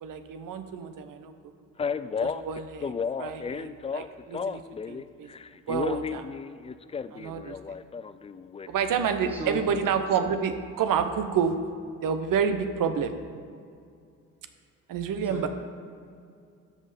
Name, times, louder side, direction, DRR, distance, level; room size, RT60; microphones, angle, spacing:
voice 1, 0.0-1.3 2.2-4.6 4.9-5.3 5.7-6.3 7.1-7.6 8.7-11.6 12.0-13.2 14.9-15.5, right 7 dB, 60° right, 8 dB, 1.0 m, -29 dB
Male speech man speaking, 1.8-5.0 5.3-8.7, left 5 dB, 15° left, 0.3 m, -33 dB
voice 2, 9.3-9.6 15.3-15.5, right 1 dB, 25° right, -3 dB, 1.7 m, -34 dB
13.0 x 5.5 x 5.2 m, 2.3 s
hypercardioid pair, 45°, 38 cm